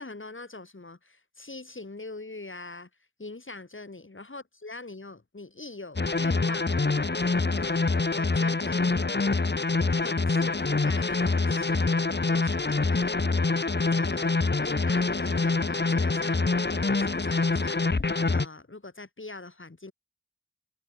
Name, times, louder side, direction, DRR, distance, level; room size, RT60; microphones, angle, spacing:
voice 1, 0.0-2.9 3.2-6.7 7.5-9.2 10.0-13.2 13.8-19.9, left 3 dB, 85° left, 3.9 m, -43 dB
sound 1, 6.0-18.5, left 3 dB, 60° left, 1.2 m, -25 dB
wide cardioid pair, 40°, 20 cm